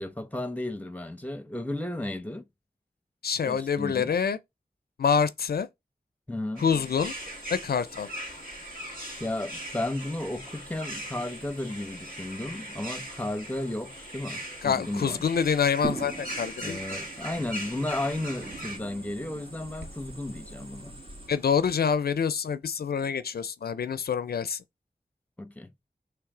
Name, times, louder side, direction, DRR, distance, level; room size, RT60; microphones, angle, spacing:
voice 1, 0.0-2.4 3.5-4.1 6.3-6.7 9.2-15.2 16.6-21.0 25.4-25.7, left 1 dB, 10° left, 0.8 m, -34 dB
voice 2, 3.2-4.4 5.0-5.7 6.6-7.1 7.5-8.1 14.6-16.8 21.3-24.6, left 6 dB, 85° left, 0.4 m, -26 dB
sound 1, 6.6-18.8, equal, 65° right, 2.1 m, -40 dB
Cricket, 6.7-21.3, right 1 dB, 85° right, 1.2 m, -49 dB
sound 2, 15.8-21.7, right 3 dB, 35° right, 1.4 m, -42 dB
3.3 x 3.2 x 4.8 m
wide cardioid pair, 60°, 16 cm